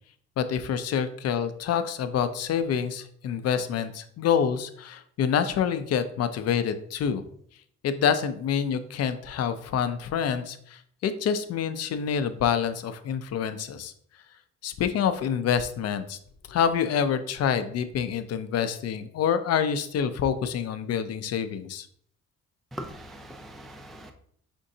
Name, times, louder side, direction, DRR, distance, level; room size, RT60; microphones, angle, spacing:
voice 1, 0.4-7.2 7.8-13.9 14.6-16.2 16.5-21.9, left 7 dB, 60° left, 10 dB, 0.5 m, -27 dB
voice 2, 22.7-24.1, right 1 dB, ahead, 5 dB, 0.3 m, -41 dB
5.2 x 3.7 x 2.7 m, 0.63 s
cardioid pair, 130°, 29 cm